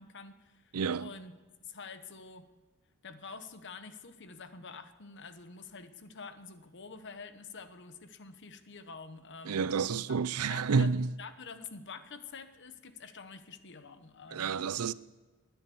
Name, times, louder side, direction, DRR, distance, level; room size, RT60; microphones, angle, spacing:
voice 1, 0.0-1.3 1.6-2.5 3.0-9.7 10.1-10.2 10.5-14.6, left 5 dB, 55° left, 1.1 m, -47 dB
voice 2, 0.7-1.1 9.5-11.1 14.3-14.9, right 5 dB, 85° right, 0.5 m, -29 dB
19.5 x 10.5 x 7.0 m
head